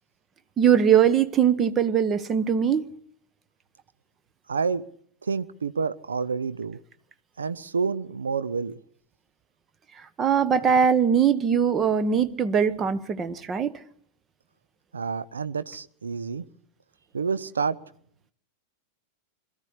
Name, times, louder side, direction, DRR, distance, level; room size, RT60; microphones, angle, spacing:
voice 1, 0.6-2.8 10.2-13.7, right 8 dB, 25° right, 1.2 m, -21 dB
voice 2, 4.5-4.8 5.2-6.8 7.4-8.7 14.9-16.5 17.1-17.8, right 5 dB, 70° right, 0.8 m, -28 dB
22.0 x 14.0 x 9.9 m
figure-of-eight pair, 90°, 0 cm